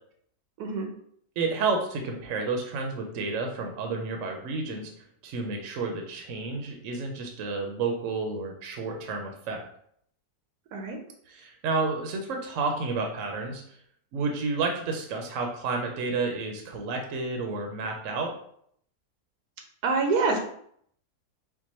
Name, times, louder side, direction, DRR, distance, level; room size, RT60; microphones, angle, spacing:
voice 1, 0.6-0.9 10.7-11.0 19.8-20.4, right 4 dB, 85° right, 2 dB, 1.2 m, -25 dB
voice 2, 1.4-4.9 5.2-9.6 11.3-13.6 14.1-18.3, right 4 dB, 65° right, 2 dB, 0.9 m, -30 dB
4.5 x 2.2 x 4.1 m, 0.67 s
omnidirectional pair, 1.6 m